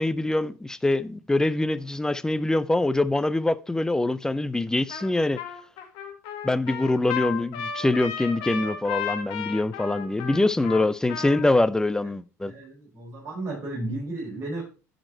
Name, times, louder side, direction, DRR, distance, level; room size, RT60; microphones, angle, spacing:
voice 1, 0.0-5.4 6.4-12.5, left 2 dB, 5° left, 0.5 m, -24 dB
Trumpet, 4.9-5.1 5.4-11.6, left 7 dB, 60° left, 2.0 m, -34 dB
voice 2, 12.5-14.6, right 2 dB, 30° right, 5.5 m, -33 dB
10.5 x 5.2 x 4.3 m
hypercardioid pair, 75°, 8 cm